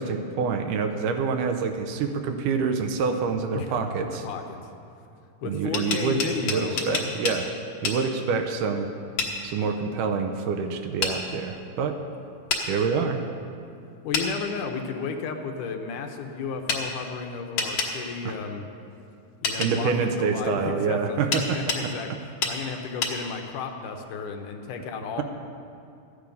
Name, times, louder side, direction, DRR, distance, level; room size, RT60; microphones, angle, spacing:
voice 1, 0.0-4.2 5.4-7.5 7.8-8.9 9.4-12.0 12.7-13.2 18.2-18.4 19.6-21.6, right 5 dB, 80° right, 6 dB, 2.1 m, -26 dB
voice 2, 3.5-4.7 5.4-7.2 14.0-18.7 19.4-25.2, left 5 dB, 75° left, 4 dB, 2.2 m, -33 dB
sound 1, 5.5-7.4 7.8-8.0 9.2-9.3 11.0-11.2 12.5-12.6 14.1-14.3 16.7-16.8 17.6-17.9 19.4-19.7 21.3-21.8 22.4-22.6 23.0-23.2, left 5 dB, 55° left, 1.9 m, -27 dB
14.0 x 9.6 x 5.3 m, 2.5 s
omnidirectional pair, 3.9 m